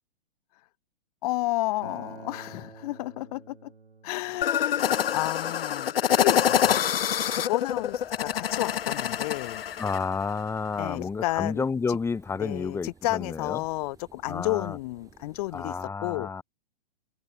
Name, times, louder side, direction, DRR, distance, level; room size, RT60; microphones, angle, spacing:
voice 1, 1.2-3.7 4.0-9.6 10.8-11.7 12.4-16.3, left 20 dB, 40° left, 0.8 m, -32 dB
Acoustic guitar, 1.8-7.0, right 4 dB, 85° right, 3.8 m, -49 dB
sound 1, 4.4-10.0, left 9 dB, 70° left, 1.0 m, -26 dB
sound 2, 7.7-15.9, right 5 dB, 10° right, 3.2 m, -57 dB
voice 2, 9.8-13.6 14.3-14.8 15.5-16.4, left 5 dB, 10° left, 1.4 m, -30 dB
figure-of-eight pair, 120°, 31 cm